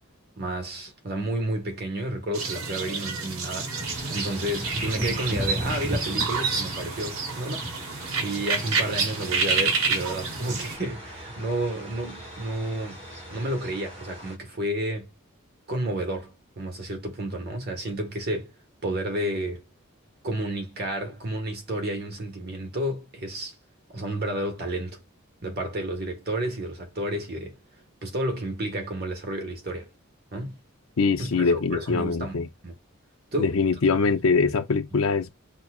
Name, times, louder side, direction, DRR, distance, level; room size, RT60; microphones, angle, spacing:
voice 1, 0.4-3.7 4.1-7.7 8.2-13.0 13.3-15.1 15.7-18.5 18.8-19.6 20.2-23.5 23.9-25.0 25.4-27.6 28.0-29.9 30.3-30.5 31.2-32.4 32.6-32.7 33.3-33.6, right 1 dB, 50° right, 1.4 m, -31 dB
sound 1, 2.3-10.8, right 4 dB, 85° right, 0.9 m, -29 dB
sound 2, 3.7-14.3, right 1 dB, 30° right, 1.6 m, -37 dB
voice 2, 31.0-32.5 33.4-35.3, left 4 dB, 75° left, 0.6 m, -23 dB
5.5 x 2.4 x 2.3 m
head